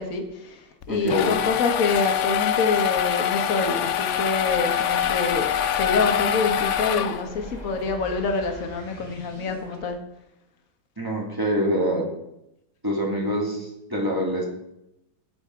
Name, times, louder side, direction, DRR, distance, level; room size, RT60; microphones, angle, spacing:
voice 1, 0.0-10.0, left 4 dB, 50° left, 5 dB, 1.7 m, -26 dB
sound 1, 0.8-7.5, left 9 dB, 70° left, 0.7 m, -24 dB
voice 2, 0.9-1.4 11.0-12.1 12.8-14.4, equal, 10° right, -2 dB, 2.6 m, -25 dB
sound 2, 4.7-9.8, left 2 dB, 25° left, 1.9 m, -41 dB
17.0 x 6.5 x 4.7 m, 0.84 s
omnidirectional pair, 1.9 m